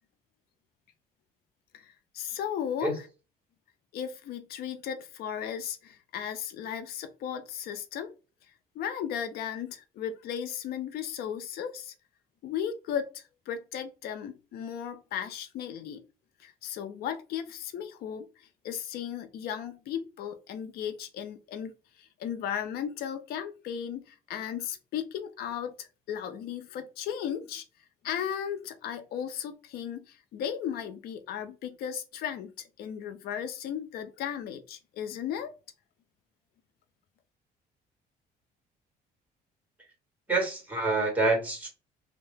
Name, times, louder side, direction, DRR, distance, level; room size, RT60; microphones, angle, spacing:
voice 1, 1.7-3.1 3.9-8.1 8.8-11.9 12.4-16.0 16.4-27.6 28.0-35.5, left 9 dB, 65° left, 0.5 m, -36 dB
voice 2, 40.3-41.7, right 2 dB, 10° right, 1.6 m, -26 dB
2.7 x 2.0 x 3.2 m
cardioid pair, 110°, 17 cm